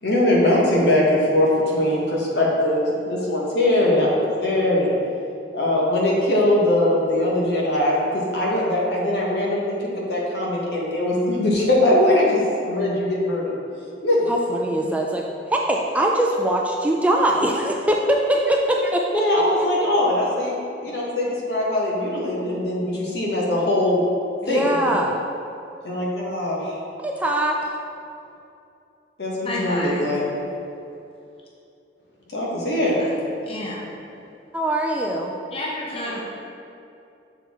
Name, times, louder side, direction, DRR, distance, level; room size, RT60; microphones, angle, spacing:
voice 1, 0.0-4.9 5.5-13.5 14.0-14.3 19.1-24.0 24.4-24.6 25.8-26.8 29.2-30.2 32.3-33.0, left 1 dB, 65° left, -4 dB, 1.2 m, -21 dB
voice 2, 14.3-15.2 15.5-19.2 24.4-25.2 27.0-27.6 34.5-35.3, right 1 dB, 10° right, 0 dB, 0.3 m, -22 dB
voice 3, 29.4-30.2 33.0-33.1 33.5-33.9 35.5-36.2, left 1 dB, 30° left, -3 dB, 0.6 m, -30 dB
6.8 x 4.3 x 3.5 m, 2.7 s
head